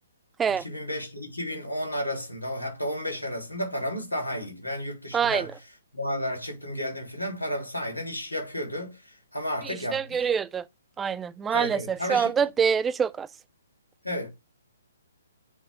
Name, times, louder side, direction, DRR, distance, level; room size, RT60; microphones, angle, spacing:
voice 1, 0.5-5.5 5.9-10.2 11.5-12.3 14.0-14.3, left 1 dB, 90° left, 3.6 m, -32 dB
voice 2, 5.1-5.5 9.6-10.7 11.0-13.3, right 7 dB, 10° right, 0.4 m, -26 dB
8.3 x 3.3 x 5.1 m
figure-of-eight pair, 130°, 0 cm